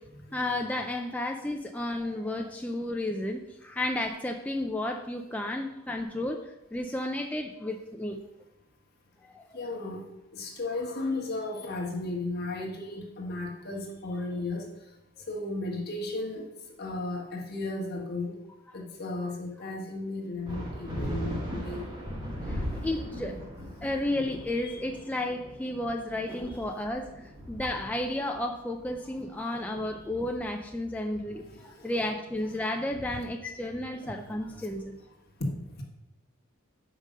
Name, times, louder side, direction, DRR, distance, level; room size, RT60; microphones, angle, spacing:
voice 1, 0.3-8.2 9.2-9.4 18.7-18.8 22.5-23.4 23.8-34.9, left 1 dB, 5° left, 2 dB, 0.4 m, -32 dB
voice 2, 9.5-10.0 10.3-14.7 15.3-16.5 16.8-18.4 18.7-21.9 22.8-22.9 24.6-24.8 29.5-29.6 31.3-31.9 34.0-34.1 34.4-34.6 35.4-35.8, left 2 dB, 50° left, 0 dB, 1.4 m, -35 dB
sound 1, 20.5-30.4, equal, 20° right, 1.5 m, -38 dB
5.4 x 5.1 x 6.4 m, 0.93 s
head